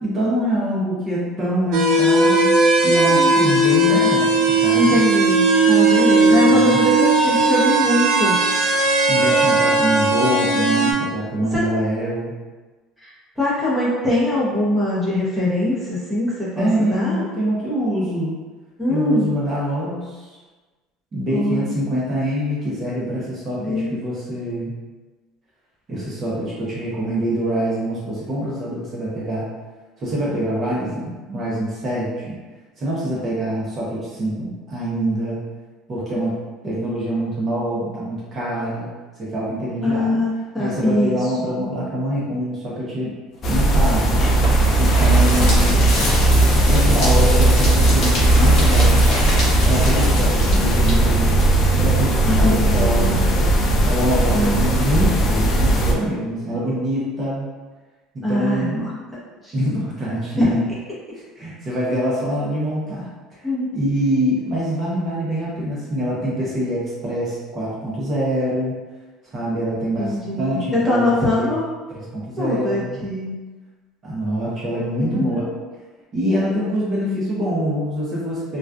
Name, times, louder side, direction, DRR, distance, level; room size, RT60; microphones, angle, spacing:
voice 1, 0.0-2.6 2.8-5.0 6.5-6.8 9.1-12.4 16.6-18.4 18.9-20.4 21.1-24.7 25.9-29.5 30.0-32.4 32.8-35.4 35.9-36.3 36.6-38.9 39.2-40.2 40.6-43.1 43.4-44.3 44.8-45.9 46.7-49.1 49.6-51.4 51.7-53.5 53.8-57.5 58.1-58.9 59.5-60.6 61.3-63.5 63.7-68.8 69.2-71.5 71.9-73.0 74.0-75.5 76.1-78.6, right 1 dB, 35° right, -6 dB, 0.8 m, -25 dB
sound 1, 1.7-10.9, right 2 dB, 70° right, 0.4 m, -17 dB
voice 2, 4.7-8.4 11.5-11.6 13.0-13.1 13.4-17.2 18.8-19.3 21.3-21.6 23.6-23.9 39.8-41.3 41.6-41.8 52.3-53.2 54.3-54.6 58.2-58.9 59.4-59.5 60.4-60.6 61.9-62.1 63.4-63.7 70.0-71.7 72.4-73.3 75.0-75.6, left 1 dB, ahead, -9 dB, 0.8 m, -22 dB
sound 2, 43.4-55.9, right 1 dB, 40° left, 0.4 m, -17 dB
sound 3, 43.5-52.3, left 1 dB, 60° left, 1.0 m, -27 dB
2.4 x 2.2 x 2.3 m, 1.3 s
supercardioid pair, 110°, 0 cm